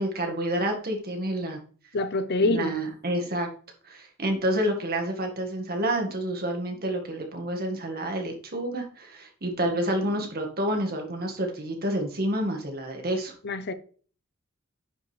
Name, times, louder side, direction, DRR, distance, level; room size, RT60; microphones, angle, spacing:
voice 1, 0.0-1.6 2.4-3.5 3.8-13.3, right 1 dB, 45° right, 1.8 m, -29 dB
voice 2, 1.9-2.7 13.4-13.7, left 2 dB, 50° left, 0.6 m, -25 dB
9.8 x 5.1 x 3.3 m
head